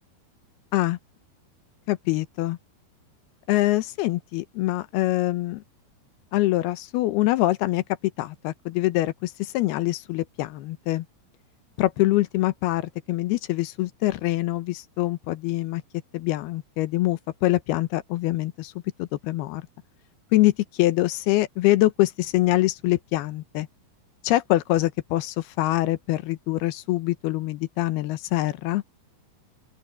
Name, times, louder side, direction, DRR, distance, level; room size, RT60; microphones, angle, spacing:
voice 1, 1.9-2.6 3.5-5.6 6.3-7.8 8.2-11.1 11.8-15.8 16.1-18.7 19.0-19.6 20.3-23.7 24.2-28.8, left 17 dB, 80° left, 2.8 m, -24 dB
open air
omnidirectional pair, 4.6 m